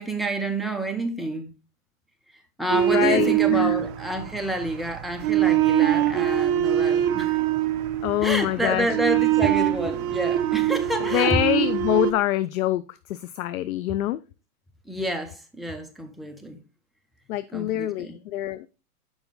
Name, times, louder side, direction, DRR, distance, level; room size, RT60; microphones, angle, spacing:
voice 1, 0.0-1.5 2.3-7.4 8.2-11.4 14.9-16.6 17.5-18.2, right 1 dB, ahead, 0.6 m, -29 dB
voice 2, 2.7-3.8 8.0-8.9 11.1-14.2 17.3-18.7, left 14 dB, 65° left, 0.5 m, -25 dB
sound 1, 2.7-12.1, right 13 dB, 35° right, 0.7 m, -23 dB
7.1 x 5.1 x 3.8 m
hypercardioid pair, 115°, 46 cm